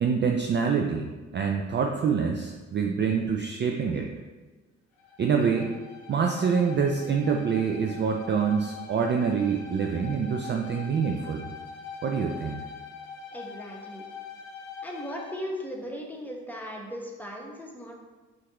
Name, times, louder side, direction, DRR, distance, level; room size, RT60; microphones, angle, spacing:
voice 1, 0.0-4.1 5.2-5.7 6.1-11.4 12.0-12.6, right 6 dB, 30° right, 3 dB, 0.4 m, -26 dB
Bowed string instrument, 4.9-15.4, left 6 dB, 75° left, 0.8 m, -43 dB
voice 2, 13.3-14.0 14.8-17.9, equal, 5° left, -1 dB, 1.0 m, -37 dB
5.7 x 2.5 x 2.9 m, 1.3 s
hypercardioid pair, 45°, 38 cm